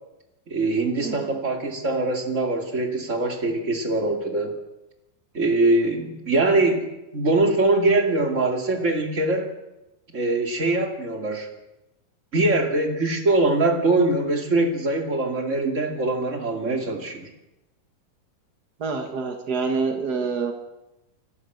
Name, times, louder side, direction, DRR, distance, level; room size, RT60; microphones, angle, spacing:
voice 1, 0.5-4.6 5.3-6.9 7.1-9.5 10.1-11.5 12.3-17.3, right 2 dB, 25° right, 3 dB, 2.1 m, -22 dB
voice 2, 1.0-1.4 18.8-20.5, right 4 dB, 65° right, 4 dB, 0.9 m, -27 dB
28.0 x 12.5 x 7.9 m, 0.98 s
omnidirectional pair, 4.4 m